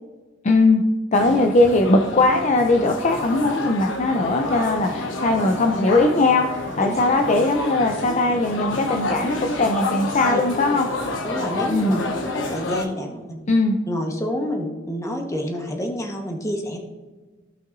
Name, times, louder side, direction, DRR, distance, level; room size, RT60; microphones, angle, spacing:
voice 1, 0.4-0.8 1.1-10.9 11.7-11.9 13.5-13.8, left 2 dB, 40° left, 3 dB, 0.6 m, -19 dB
sound 1, 1.1-12.8, left 2 dB, 90° left, 1.1 m, -29 dB
voice 2, 11.2-13.5 13.9-16.8, equal, 15° left, 2 dB, 1.2 m, -28 dB
15.0 x 5.7 x 2.6 m, 1.3 s
head